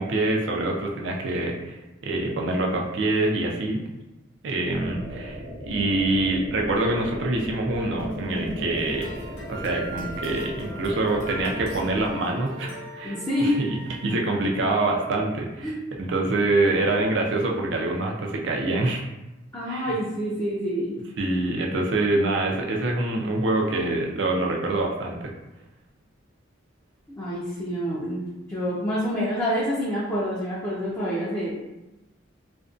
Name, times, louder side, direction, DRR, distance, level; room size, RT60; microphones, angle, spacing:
voice 1, 0.0-3.8 4.4-9.1 9.5-19.0 19.7-19.9 21.2-25.3, right 2 dB, 65° right, 0 dB, 0.5 m, -25 dB
sound 1, 4.7-12.1, equal, 35° left, 0.8 m, -38 dB
sound 2, 8.0-13.4, left 1 dB, 75° left, 0.7 m, -39 dB
sound 3, 8.8-14.1, right 3 dB, 45° right, 0.8 m, -42 dB
voice 2, 13.0-13.6 15.6-15.7 19.5-20.9 27.2-31.5, equal, 15° left, -9 dB, 0.5 m, -27 dB
2.5 x 2.2 x 2.4 m, 1.0 s
head